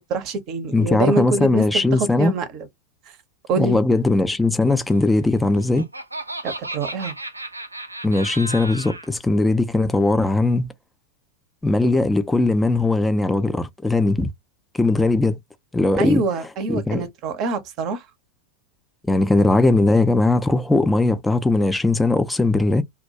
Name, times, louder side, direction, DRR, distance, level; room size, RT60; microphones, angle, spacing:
voice 1, 0.0-2.7 3.5-3.8 6.4-7.1 16.0-18.0, right 3 dB, 40° right, 0.6 m, -25 dB
voice 2, 0.7-2.3 3.6-5.9 8.0-10.7 11.6-14.3 14.7-15.4 15.7-16.2 16.7-17.0 19.1-22.8, left 2 dB, 5° left, 0.4 m, -19 dB
Laughter, 5.3-9.1, right 2 dB, 80° right, 0.3 m, -34 dB
2.3 x 2.2 x 2.7 m
figure-of-eight pair, 90°, 0 cm